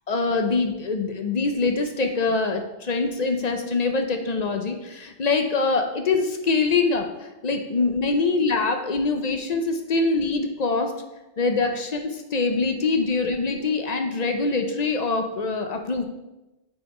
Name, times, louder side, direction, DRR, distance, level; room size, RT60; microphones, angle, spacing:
voice 1, 0.1-10.9 11.4-16.0, left 3 dB, 45° left, 6 dB, 0.6 m, -24 dB
5.9 x 4.3 x 4.8 m, 1.0 s
omnidirectional pair, 1.2 m